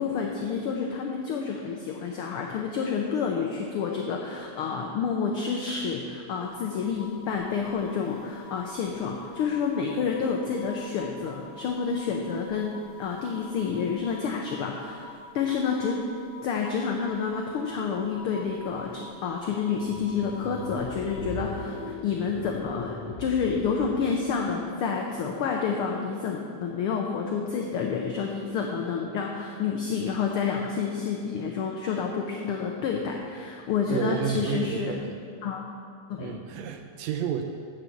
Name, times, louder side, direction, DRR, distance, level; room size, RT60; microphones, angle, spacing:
voice 1, 0.0-12.7 13.0-16.0 16.4-35.0 35.4-35.7 36.1-36.4, left 6 dB, 85° left, 1 dB, 1.2 m, -29 dB
sound 1, 6.4-21.9, left 3 dB, 45° left, 1.0 m, -46 dB
sound 2, 19.7-24.6, left 2 dB, 60° left, 1.4 m, -39 dB
voice 2, 33.9-35.2 36.2-37.4, right 8 dB, 80° right, 6 dB, 1.7 m, -30 dB
7.7 x 6.7 x 7.2 m, 2.3 s
omnidirectional pair, 3.3 m